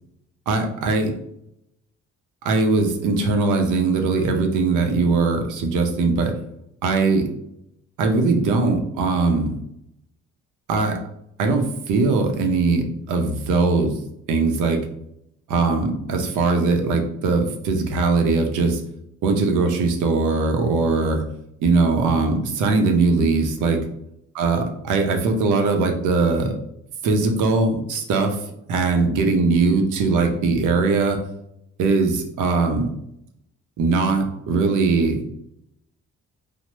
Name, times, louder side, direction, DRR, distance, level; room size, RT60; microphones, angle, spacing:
voice 1, 0.5-1.1 2.4-6.3 6.8-7.3 8.0-9.5 10.7-11.0 11.4-13.9 14.3-14.8 15.5-18.8 19.2-21.2 21.6-23.8 24.4-26.5 27.0-28.4 28.7-31.2 31.8-32.9 33.8-35.2, right 3 dB, 80° right, 4 dB, 0.6 m, -20 dB
3.3 x 2.0 x 3.0 m, 0.76 s
cardioid pair, 90°, 30 cm